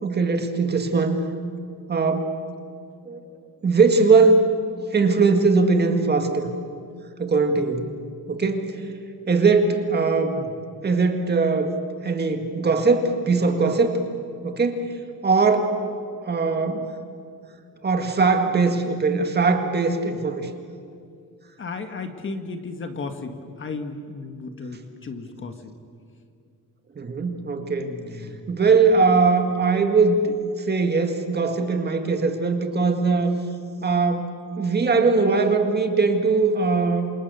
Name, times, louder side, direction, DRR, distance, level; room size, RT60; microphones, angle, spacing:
voice 1, 0.0-1.2 1.9-2.4 3.0-3.3 3.6-4.5 4.9-6.5 7.2-7.9 8.3-8.9 9.3-10.4 10.8-11.8 12.0-14.0 14.4-14.9 15.2-15.8 16.2-16.9 17.8-20.5 27.0-28.0 28.5-33.4 33.8-34.3 34.6-37.1, right 4 dB, 30° right, 5 dB, 1.9 m, -20 dB
voice 2, 21.6-25.7 27.8-28.4, left 3 dB, 35° left, 6 dB, 1.7 m, -34 dB
28.5 x 25.5 x 6.8 m, 2.3 s
wide cardioid pair, 180°, 34 cm